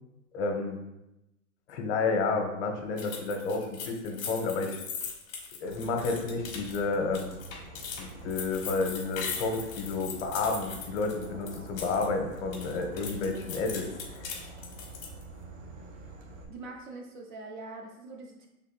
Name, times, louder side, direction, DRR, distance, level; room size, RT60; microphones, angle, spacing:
voice 1, 0.3-0.8 1.7-4.8 5.6-7.3 8.0-13.9 14.1-14.3, left 3 dB, 50° left, 3 dB, 0.9 m, -31 dB
sound 1, 3.0-12.1 12.4-15.2, left 6 dB, 35° left, 1.4 m, -40 dB
Insect / Frog, 5.6-16.4, right 2 dB, 55° right, 1.0 m, -47 dB
voice 2, 16.5-18.5, right 3 dB, 35° right, 2 dB, 0.4 m, -43 dB
5.5 x 3.5 x 2.3 m, 0.91 s
hypercardioid pair, 125°, 44 cm